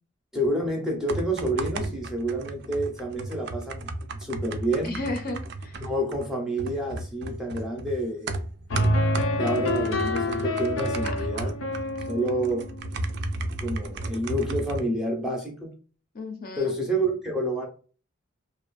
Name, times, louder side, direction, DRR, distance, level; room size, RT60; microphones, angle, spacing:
voice 1, 0.3-5.0 5.8-8.4 9.3-11.5 12.1-12.7 13.3-15.7 16.6-17.7, right 1 dB, 5° right, 1 dB, 0.6 m, -29 dB
sound 1, 1.1-14.8, right 2 dB, 55° right, 0.4 m, -34 dB
voice 2, 4.8-5.8 11.0-11.5 16.1-16.7, left 2 dB, 45° left, 4 dB, 0.6 m, -34 dB
sound 2, 8.7-13.6, left 1 dB, 90° left, 0.5 m, -28 dB
2.6 x 2.3 x 2.3 m, 0.39 s
head